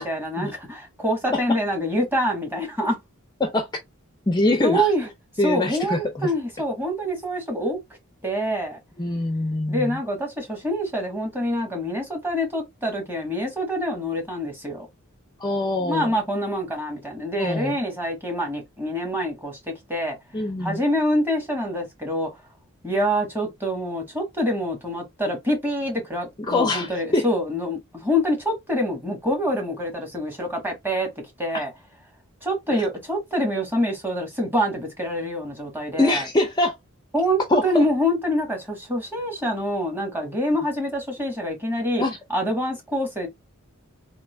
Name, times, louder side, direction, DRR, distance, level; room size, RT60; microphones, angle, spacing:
voice 1, 0.0-3.0 4.6-5.1 5.4-7.8 8.2-8.8 9.7-14.9 15.8-19.6 19.9-20.2 20.6-22.3 22.8-31.7 32.4-36.2 37.1-42.0 42.3-43.3, equal, 10° right, 1.6 m, -26 dB
voice 2, 4.3-4.9 5.4-6.3 9.0-10.0 15.4-16.1 17.4-17.7 20.3-20.8 26.4-27.3 31.5-31.6 36.0-36.8 37.5-37.8 42.0-42.2, left 2 dB, 20° left, 0.6 m, -23 dB
3.7 x 2.8 x 3.2 m
head